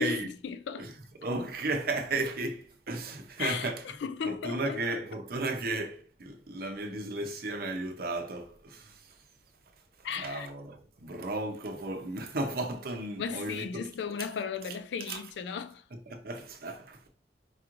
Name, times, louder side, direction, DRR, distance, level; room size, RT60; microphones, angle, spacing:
voice 1, 0.0-0.9 3.4-3.7 4.0-4.8 10.0-10.5 13.2-15.8, left 6 dB, 75° left, 0.3 m, -35 dB
voice 2, 0.7-3.9 4.2-9.2 10.0-13.9 14.2-14.3 14.7-15.2 15.9-17.1, right 2 dB, 55° right, 0.7 m, -35 dB
4.7 x 3.0 x 2.5 m
head